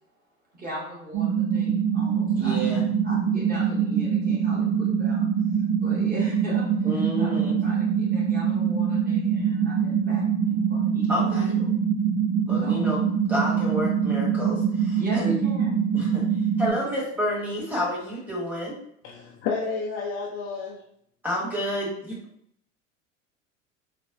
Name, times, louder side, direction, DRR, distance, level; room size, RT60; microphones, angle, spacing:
voice 1, 0.5-2.6 3.0-11.3 11.6-11.7 12.6-12.8 15.0-15.8 16.6-16.9, right 1 dB, 25° right, -5 dB, 1.4 m, -39 dB
sound 1, 1.1-16.7, right 7 dB, 45° right, 0.9 m, -24 dB
voice 2, 2.3-2.8 6.8-7.6 11.1-11.5 12.5-15.4 15.9-16.2 16.6-18.8 21.2-22.2, equal, 5° right, -5 dB, 1.3 m, -30 dB
voice 3, 19.0-20.8, left 4 dB, 35° left, -2 dB, 0.5 m, -30 dB
4.0 x 2.2 x 2.5 m, 0.69 s
figure-of-eight pair, 80°, 38 cm